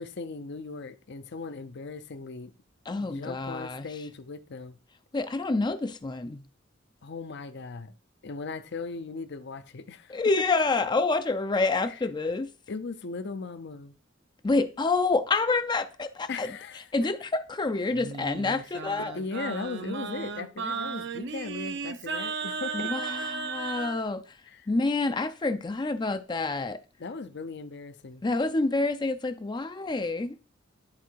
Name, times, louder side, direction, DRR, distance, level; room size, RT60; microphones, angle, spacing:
voice 1, 0.0-2.5 3.0-4.8 7.0-7.9 8.2-10.2 11.9-12.0 12.7-14.0 16.3-16.9 19.0-22.9 24.5-24.7 27.0-28.2, left 4 dB, 60° left, 0.6 m, -38 dB
voice 2, 2.9-3.9 5.1-6.4 10.1-12.5 14.4-16.5 16.9-19.2 22.7-24.4 24.7-26.8 28.2-30.4, left 3 dB, 25° left, 0.4 m, -28 dB
Singing, 17.9-24.0, right 5 dB, 65° right, 0.7 m, -35 dB
10.5 x 3.7 x 4.6 m
head